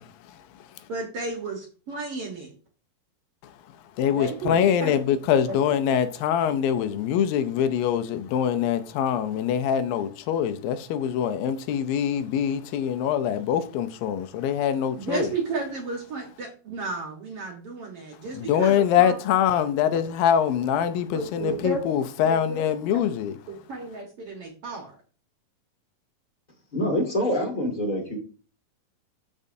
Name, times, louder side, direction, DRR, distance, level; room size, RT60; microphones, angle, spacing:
voice 1, 0.0-0.9 3.4-15.3 18.3-23.4, left 9 dB, 85° left, 2.5 m, -24 dB
voice 2, 0.9-2.5 4.2-5.0 15.1-19.2 20.6-20.7 21.1-21.8 22.2-22.6 23.5-25.0, right 3 dB, 50° right, 2.1 m, -33 dB
voice 3, 26.7-28.2, equal, 15° left, 1.5 m, -25 dB
14.0 x 5.4 x 2.7 m
omnidirectional pair, 4.1 m